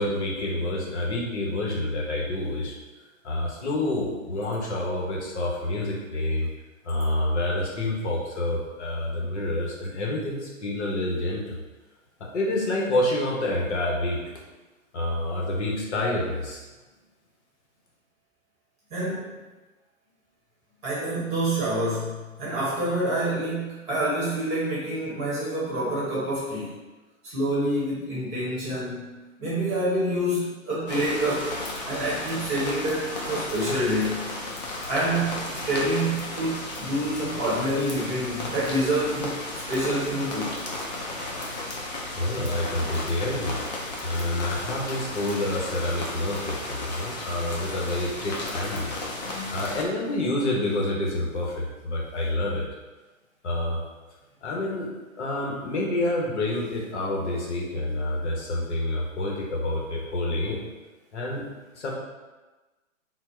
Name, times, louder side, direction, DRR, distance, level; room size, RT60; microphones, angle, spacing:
voice 1, 0.0-2.7 3.2-6.5 6.8-11.6 12.2-14.2 14.9-16.6 41.9-48.9 49.2-52.6 53.4-53.8 54.4-54.9 55.2-60.6 61.1-61.5 61.7-61.9, left 1 dB, 55° left, -2 dB, 1.1 m, -28 dB
voice 2, 18.9-19.3 20.8-26.8 27.2-31.5 31.9-34.2 34.8-40.5, right 1 dB, 15° right, -8 dB, 1.0 m, -27 dB
sound 1, 30.9-49.8, left 2 dB, 30° left, 0.5 m, -34 dB
4.3 x 2.1 x 4.4 m, 1.2 s
hypercardioid pair, 145°, 41 cm